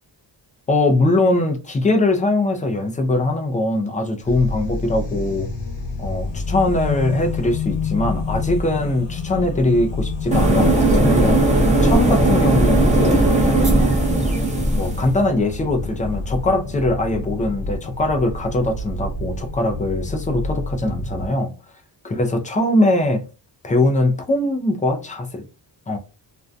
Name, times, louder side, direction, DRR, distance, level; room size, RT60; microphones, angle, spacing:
voice 1, 0.7-5.5 6.0-13.2 14.7-21.5 22.0-23.2 23.6-25.4 25.9-26.0, left 2 dB, 20° left, 0.3 m, -21 dB
sound 1, 4.2-21.3, left 3 dB, 75° left, 0.8 m, -28 dB
sound 2, 10.3-15.1, right 2 dB, 15° right, 0.6 m, -17 dB
2.5 x 2.1 x 2.4 m
wide cardioid pair, 150°, 45 cm